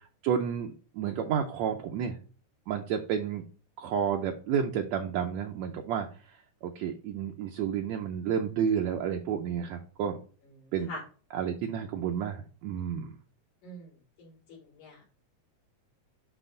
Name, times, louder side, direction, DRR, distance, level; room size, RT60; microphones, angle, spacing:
voice 1, 0.2-2.2 2.7-3.4 3.8-6.1 6.6-10.2 10.7-10.9 11.3-13.2, right 8 dB, 75° right, 3 dB, 1.8 m, -31 dB
voice 2, 10.6-11.0 13.6-13.9 14.2-15.1, equal, 75° left, -6 dB, 5.0 m, -44 dB
9.1 x 3.3 x 3.9 m, 0.39 s
omnidirectional pair, 3.6 m